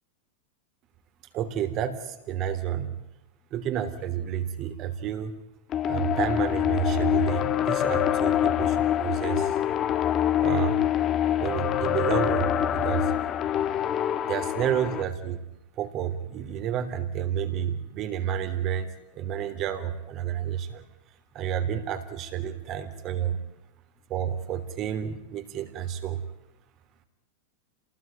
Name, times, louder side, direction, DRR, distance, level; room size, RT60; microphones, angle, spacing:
voice 1, 1.3-3.0 3.5-5.3 5.9-9.5 10.4-10.8 11.4-13.1 14.3-15.4 15.8-18.9 19.1-20.8 21.3-23.4 24.1-26.2, right 9 dB, 40° right, 8 dB, 3.4 m, -30 dB
sound 1, 5.7-15.0, left 11 dB, 35° left, 1.5 m, -25 dB
27.5 x 19.5 x 9.2 m, 0.90 s
hypercardioid pair, 110°, 0 cm